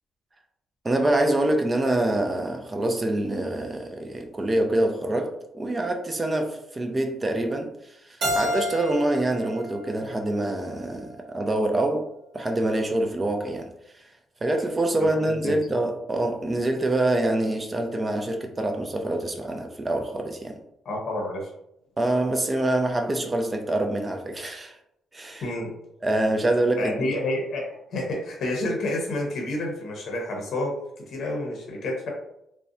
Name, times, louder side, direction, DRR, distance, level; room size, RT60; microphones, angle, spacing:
voice 1, 0.8-12.1 12.3-13.7 14.4-20.6 22.0-24.8 25.1-25.5 26.0-27.1, right 1 dB, 25° right, 4 dB, 0.4 m, -25 dB
Keyboard (musical), 8.2-11.0, equal, 65° right, 0.9 m, -31 dB
voice 2, 15.2-15.5 20.8-21.5 25.4-25.7 26.8-27.6 27.9-30.7 31.1-32.1, left 1 dB, 65° left, 0 dB, 0.6 m, -29 dB
2.5 x 2.1 x 2.5 m, 0.79 s
cardioid pair, 90°, 0 cm